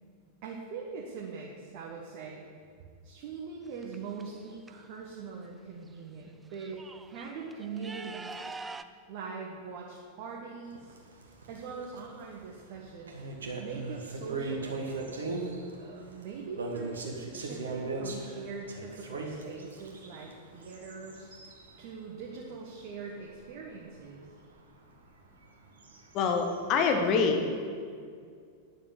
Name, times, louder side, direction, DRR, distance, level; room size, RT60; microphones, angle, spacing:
voice 1, 0.4-2.4 3.0-8.4 9.1-11.0 11.5-13.2 13.6-15.1 15.8-21.3 21.8-24.2, right 5 dB, 45° right, -2 dB, 1.5 m, -42 dB
sound 1, 3.6-4.7 5.9-6.0 6.3-8.8, right 3 dB, 15° right, 0.5 m, -45 dB
sound 2, 10.7-21.9 22.2-22.4 22.8-23.0 23.3-23.4 23.8-23.9 24.2-24.3 25.4-27.1, right 3 dB, 70° right, 1.7 m, -38 dB
voice 2, 26.1-27.5, left 5 dB, 35° left, 4 dB, 1.4 m, -25 dB
10.0 x 7.2 x 8.6 m, 2.2 s
figure-of-eight pair, 90°, 0 cm